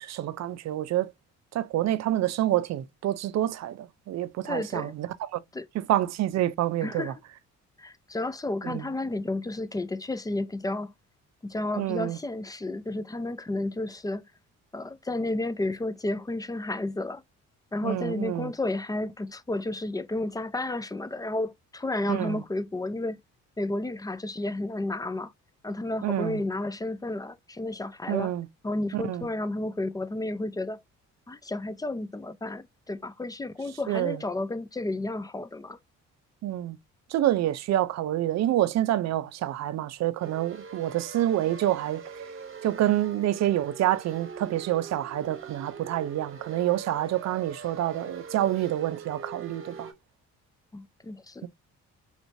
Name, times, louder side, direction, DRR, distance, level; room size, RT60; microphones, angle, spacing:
voice 1, 0.0-1.1 1.5-5.4 5.7-7.1 8.6-8.9 11.8-12.2 17.8-18.5 22.1-22.4 26.0-26.4 28.1-28.5 28.9-29.3 33.9-34.2 36.4-36.8 37.1-42.0 42.6-49.9 51.4-51.5, right 13 dB, 60° right, 0.5 m, -27 dB
voice 2, 4.4-4.9 5.5-5.7 6.8-7.1 7.8-10.9 11.4-14.2 14.7-17.2 17.7-23.2 23.6-25.3 25.6-28.3 28.6-30.8 31.3-35.8 50.7-51.5, left 2 dB, 15° left, 0.4 m, -32 dB
sound 1, 40.2-49.9, right 5 dB, 45° right, 1.0 m, -43 dB
3.2 x 3.1 x 2.6 m
cardioid pair, 90°, 30 cm